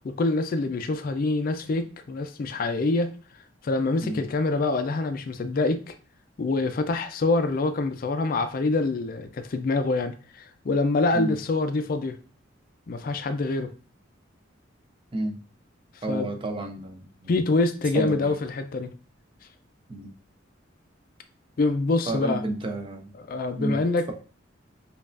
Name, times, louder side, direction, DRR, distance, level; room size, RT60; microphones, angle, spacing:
voice 1, 0.0-3.1 3.6-5.9 6.4-12.2 12.9-13.7 16.1-16.3 17.3-18.9 21.6-22.4 23.3-24.1, left 3 dB, 45° left, 0.4 m, -25 dB
voice 2, 16.0-17.3 17.9-18.4 19.9-20.1 22.1-23.1 23.6-23.8, right 2 dB, 25° right, 0.5 m, -31 dB
5.3 x 2.4 x 2.4 m
head